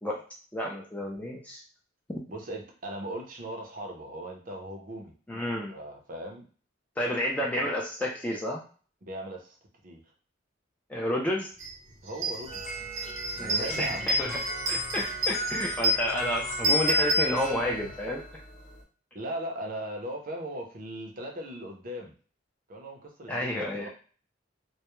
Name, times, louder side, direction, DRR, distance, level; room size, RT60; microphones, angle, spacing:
voice 1, 0.5-1.6 5.3-5.7 7.0-8.6 10.9-11.5 13.4-14.4 14.7-18.2 23.3-23.9, left 1 dB, 5° left, -2 dB, 0.3 m, -30 dB
voice 2, 2.3-5.1 5.7-6.5 9.0-9.6 9.8-10.0 12.0-12.9 13.3-14.1 19.1-22.1 22.7-23.9, right 1 dB, 45° right, 1 dB, 0.5 m, -38 dB
sound 1, 11.6-11.7 12.1-17.9, right 1 dB, 90° right, 0.8 m, -30 dB
sound 2, 12.5-18.8, right 1 dB, 40° left, 0.7 m, -37 dB
2.2 x 2.0 x 2.9 m, 0.40 s
head